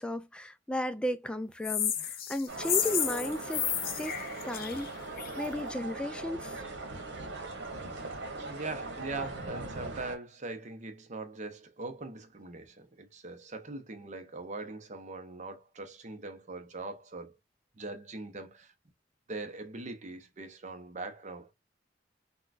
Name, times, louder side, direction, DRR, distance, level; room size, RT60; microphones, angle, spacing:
voice 1, 0.0-3.7 4.0-4.2 4.4-5.0 5.4-6.6, equal, 5° left, 0.3 m, -34 dB
sound 1, 1.6-5.4, left 9 dB, 55° left, 0.6 m, -32 dB
sound 2, 2.5-10.2, right 2 dB, 70° right, 1.1 m, -40 dB
voice 2, 8.5-17.3 17.8-18.7 19.3-21.5, right 3 dB, 40° right, 0.7 m, -41 dB
3.7 x 2.2 x 2.5 m
head